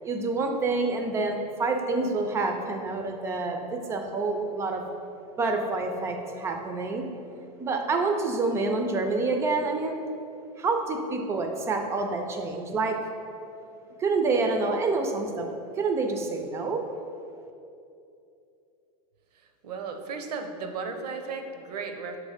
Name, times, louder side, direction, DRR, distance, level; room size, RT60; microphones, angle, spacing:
voice 1, 0.0-4.8 5.4-7.1 7.6-10.0 10.6-13.0 14.0-15.5 15.8-16.9, right 3 dB, 15° right, 4 dB, 0.3 m, -27 dB
voice 2, 19.6-22.2, right 4 dB, 90° right, 6 dB, 0.7 m, -35 dB
6.2 x 3.1 x 4.9 m, 2.7 s
supercardioid pair, 150°, 20 cm